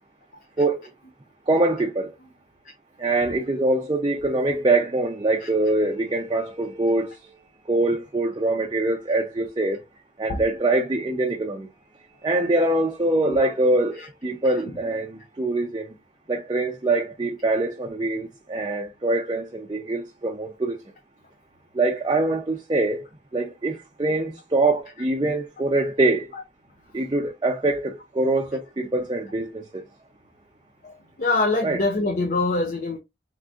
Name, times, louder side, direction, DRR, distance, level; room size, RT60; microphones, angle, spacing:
voice 1, 1.5-2.1 3.0-7.1 7.7-9.8 10.2-11.7 12.2-14.0 14.2-15.9 16.3-20.8 21.8-23.0 23.3-26.3 26.9-29.5 31.6-31.8, right 2 dB, 25° right, 0.5 m, -23 dB
voice 2, 14.4-14.8 26.3-26.4 31.2-33.0, left 3 dB, 50° left, 0.6 m, -25 dB
3.7 x 3.7 x 2.4 m
head